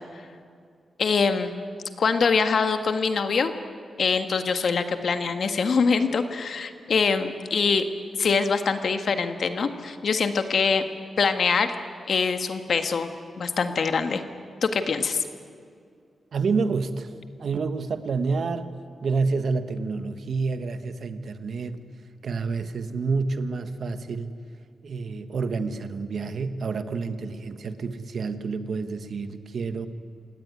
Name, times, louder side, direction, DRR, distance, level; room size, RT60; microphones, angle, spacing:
voice 1, 1.0-1.5 2.0-3.5 4.0-7.9 8.2-10.8 11.2-11.7 12.1-13.1 13.4-14.2 14.6-15.2, left 5 dB, 60° left, 8 dB, 1.6 m, -24 dB
voice 2, 16.3-17.1 17.4-18.7 19.0-21.8 22.2-24.3 24.8-29.9, right 4 dB, 60° right, 10 dB, 1.4 m, -28 dB
27.5 x 18.0 x 9.7 m, 2.3 s
wide cardioid pair, 130°, 0 cm